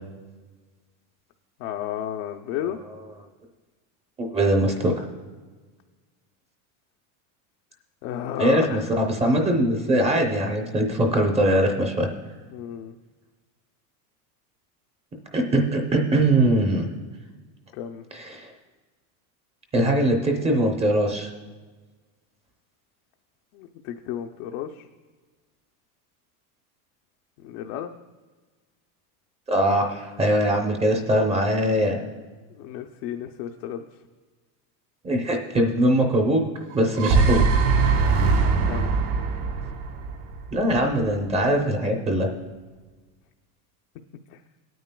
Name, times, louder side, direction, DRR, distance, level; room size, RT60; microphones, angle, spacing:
voice 1, 1.6-2.8 8.0-8.9 12.5-13.0 17.7-18.1 23.5-24.9 27.4-27.9 32.5-33.9 38.6-38.9 44.3-44.4, left 10 dB, 55° left, 3 dB, 0.6 m, -32 dB
voice 2, 4.2-4.9 8.4-12.1 15.3-16.9 18.1-18.5 19.7-21.3 29.5-32.0 35.0-36.4 36.7-37.4 40.5-42.3, right 1 dB, 15° right, 2 dB, 0.7 m, -21 dB
sound 1, 36.7-40.9, right 4 dB, 75° right, 2.1 m, -22 dB
18.0 x 9.2 x 2.2 m, 1.3 s
supercardioid pair, 155°, 44 cm